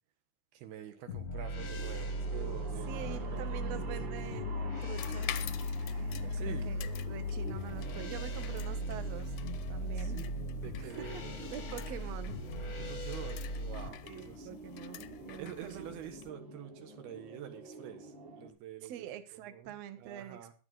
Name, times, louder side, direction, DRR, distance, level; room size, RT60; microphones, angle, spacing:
voice 1, 0.5-3.8 6.3-6.7 10.0-11.7 12.8-14.5 15.4-19.1 19.3-20.5, right 11 dB, 85° right, 7 dB, 3.4 m, -47 dB
sound 1, 1.1-13.9, left 1 dB, 55° left, 1.0 m, -37 dB
sound 2, 1.6-18.5, right 1 dB, 35° right, 2.7 m, -48 dB
voice 2, 2.9-5.5 6.2-9.4 9.7-10.2 10.8-11.2 11.5-12.4 14.0-16.0 18.8-20.5, right 10 dB, 60° right, 9 dB, 2.0 m, -45 dB
sound 3, 5.0-16.3, left 13 dB, 80° left, 1.8 m, -48 dB
15.0 x 10.5 x 4.0 m, 0.33 s
omnidirectional pair, 4.4 m